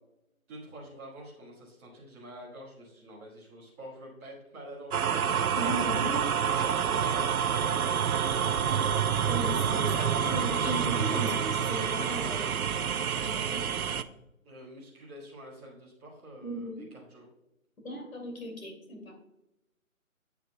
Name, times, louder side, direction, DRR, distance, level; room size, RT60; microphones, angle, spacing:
voice 1, 0.5-5.4 6.0-8.8 14.0-14.1 14.4-17.3, equal, 10° right, -9 dB, 1.6 m, -48 dB
sound 1, 4.9-14.0, right 7 dB, 90° right, 0.6 m, -28 dB
voice 2, 5.5-6.3 9.3-12.7 13.1-13.6 16.4-16.9 17.8-19.2, equal, 70° left, 2 dB, 2.6 m, -37 dB
8.3 x 8.0 x 2.2 m, 0.90 s
figure-of-eight pair, 165°, 42 cm